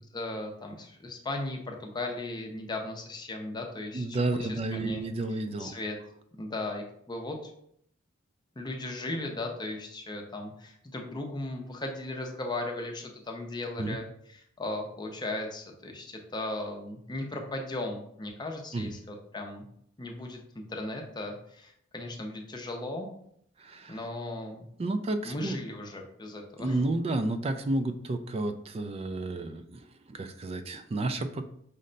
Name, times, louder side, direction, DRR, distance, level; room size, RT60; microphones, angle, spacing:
voice 1, 0.1-5.0 5.6-6.0 6.4-7.4 8.6-19.7 20.0-23.1 23.9-24.7 25.2-26.8, left 2 dB, 20° left, 2 dB, 0.6 m, -37 dB
voice 2, 3.9-5.7 13.8-14.0 18.7-18.9 23.6-24.0 24.8-25.6 26.6-29.8 30.1-31.4, right 2 dB, 30° right, 9 dB, 0.3 m, -31 dB
5.2 x 2.1 x 3.8 m, 0.69 s
head